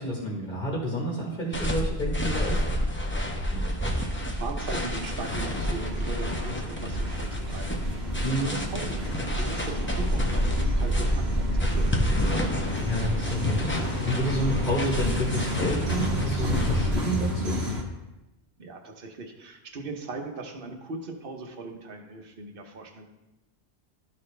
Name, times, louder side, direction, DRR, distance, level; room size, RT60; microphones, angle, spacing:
voice 1, 0.0-2.6 8.2-8.6 12.8-17.6, equal, 50° left, -3 dB, 1.6 m, -29 dB
sound 1, 1.5-16.9, equal, 15° left, 0.7 m, -28 dB
voice 2, 3.5-8.1 8.4-12.2 18.6-23.0, right 3 dB, 60° right, 3 dB, 1.1 m, -39 dB
sound 2, 5.1-17.8, equal, 75° right, 1.4 m, -32 dB
12.5 x 4.2 x 3.2 m, 1.0 s
omnidirectional pair, 1.1 m